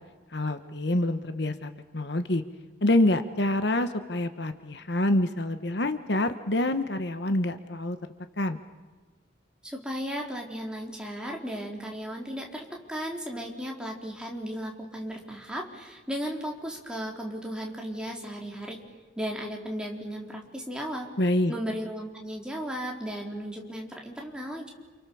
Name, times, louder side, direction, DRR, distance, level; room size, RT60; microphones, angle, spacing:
voice 1, 0.3-2.4 2.8-8.0 8.4-8.6 21.2-21.5, left 1 dB, 60° left, 9 dB, 1.3 m, -26 dB
voice 2, 9.6-18.8 19.2-21.1 21.5-24.7, equal, 5° right, -1 dB, 4.0 m, -35 dB
29.5 x 28.5 x 7.1 m, 1.3 s
head